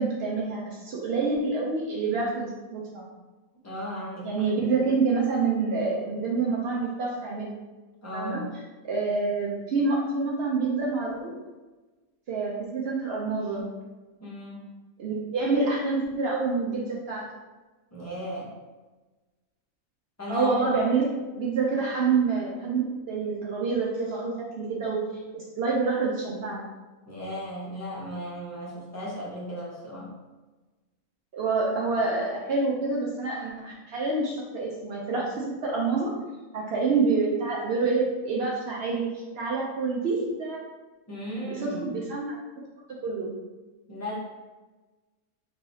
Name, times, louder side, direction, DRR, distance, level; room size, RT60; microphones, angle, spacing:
voice 1, 0.0-3.0 4.2-7.5 8.1-8.4 8.8-11.3 12.3-13.7 15.0-17.3 20.3-25.0 25.3-26.6 31.3-36.1 36.5-39.1 39.4-40.6 41.4-42.4 43.0-43.3, right 4 dB, 65° right, -4 dB, 0.6 m, -27 dB
voice 2, 3.6-4.3 8.0-8.6 14.2-14.7 17.9-18.5 20.2-20.7 27.1-30.1 41.1-42.1 43.9-44.2, equal, 20° left, -6 dB, 0.4 m, -36 dB
3.3 x 2.7 x 2.6 m, 1.2 s
omnidirectional pair, 1.5 m